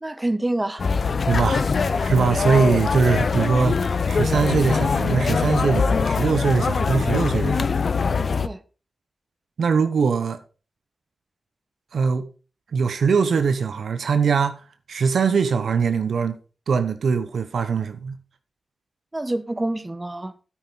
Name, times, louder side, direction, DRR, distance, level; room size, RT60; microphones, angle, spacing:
voice 1, 0.0-0.8 1.5-1.7 8.4-8.6 19.1-20.3, right 1 dB, 25° right, 1.0 m, -27 dB
sound 1, 0.8-8.5, left 5 dB, 65° left, 0.5 m, -22 dB
voice 2, 1.3-7.7 9.6-10.4 11.9-12.3 12.7-14.6 14.9-16.4 16.7-18.2, right 5 dB, 80° right, 0.9 m, -22 dB
9.4 x 8.8 x 4.0 m
cardioid pair, 40°, 0 cm